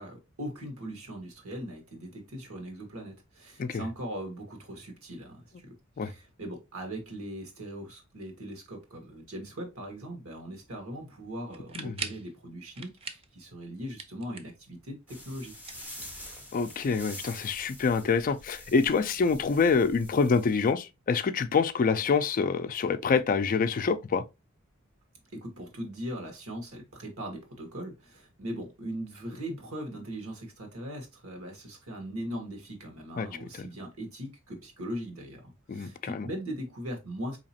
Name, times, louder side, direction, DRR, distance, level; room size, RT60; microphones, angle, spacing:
voice 1, 0.0-15.5 25.3-37.4, equal, 85° right, 1.4 m, -40 dB
sound 1, 11.5-12.3 12.7-13.3 13.6-14.7 15.5-16.5, right 5 dB, 25° right, 0.4 m, -41 dB
sound 2, 15.1-20.7, left 1 dB, 10° right, 1.0 m, -46 dB
voice 2, 16.5-24.2 33.2-33.3 33.5-33.7 35.7-36.3, left 5 dB, 40° left, 0.3 m, -26 dB
4.0 x 2.9 x 2.8 m
head